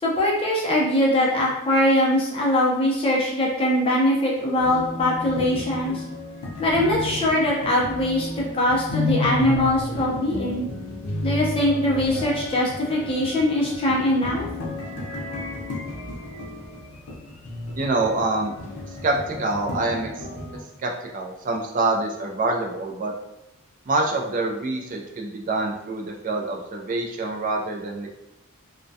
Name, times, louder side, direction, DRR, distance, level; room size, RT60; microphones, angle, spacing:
voice 1, 0.0-6.0 6.6-8.3 8.5-10.7 11.2-14.4, left 1 dB, 25° left, -4 dB, 0.5 m, -22 dB
sound 1, 4.6-20.6, left 2 dB, 80° left, 0.5 m, -32 dB
voice 2, 17.8-18.5 18.9-20.3 20.8-23.1 23.9-28.2, right 2 dB, 35° right, 1 dB, 0.3 m, -26 dB
2.2 x 2.1 x 2.6 m, 0.93 s
head